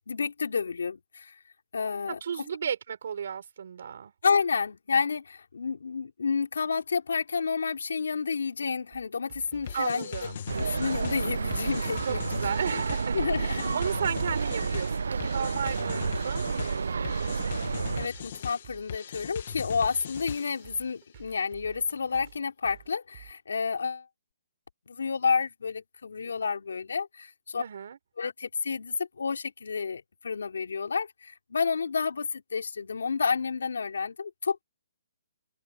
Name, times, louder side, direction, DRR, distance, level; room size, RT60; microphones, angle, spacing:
voice 1, 0.0-1.3 1.7-2.2 4.2-10.2 10.6-12.8 13.1-13.8 18.0-24.1 24.9-27.6 28.2-34.6, left 5 dB, 90° left, 4.1 m, -30 dB
voice 2, 2.1-4.1 9.7-10.4 12.0-17.7 27.6-28.0, right 7 dB, 60° right, 4.8 m, -34 dB
sound 1, 8.9-23.3, right 15 dB, 30° right, 7.8 m, -52 dB
sound 2, 9.7-20.7, left 8 dB, 45° left, 1.9 m, -40 dB
sound 3, 10.5-18.1, right 5 dB, 85° right, 0.5 m, -30 dB
hypercardioid pair, 170°, 0 cm